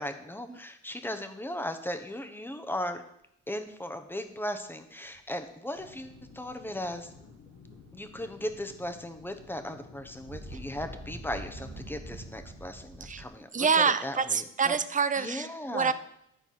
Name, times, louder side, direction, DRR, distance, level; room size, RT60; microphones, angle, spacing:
voice 1, 0.0-3.0 3.5-7.1 7.9-14.7 15.2-15.9, left 1 dB, 5° left, 7 dB, 1.0 m, -37 dB
sound 1, 5.1-5.3 5.9-6.4 6.9-8.1 8.5-13.2, right 1 dB, 60° right, 1.7 m, -46 dB
sound 2, 5.8-11.5, left 7 dB, 60° left, 1.2 m, -54 dB
voice 2, 13.5-15.9, right 6 dB, 25° right, 14 dB, 0.5 m, -26 dB
11.0 x 4.5 x 5.9 m, 0.77 s
cardioid pair, 90°, 30 cm